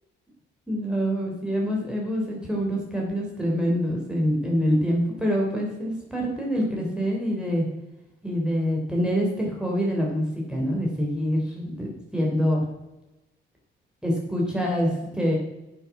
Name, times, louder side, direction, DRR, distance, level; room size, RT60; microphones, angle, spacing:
voice 1, 0.7-7.7 8.2-12.6 14.0-15.4, equal, 5° right, -2 dB, 3.5 m, -25 dB
10.5 x 6.7 x 6.0 m, 0.97 s
cardioid pair, 90°, 20 cm